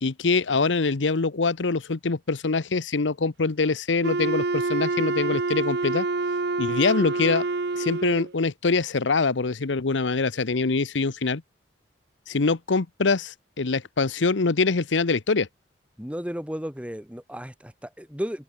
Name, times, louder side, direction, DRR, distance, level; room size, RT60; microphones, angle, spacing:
voice 1, 0.0-6.0 6.6-7.4 7.8-11.4 12.3-15.5, left 4 dB, 90° left, 0.9 m, -24 dB
Wind instrument woodwind instrument, 4.0-8.3, right 3 dB, 65° right, 0.9 m, -27 dB
voice 2, 16.0-18.4, equal, 5° right, 5.5 m, -34 dB
head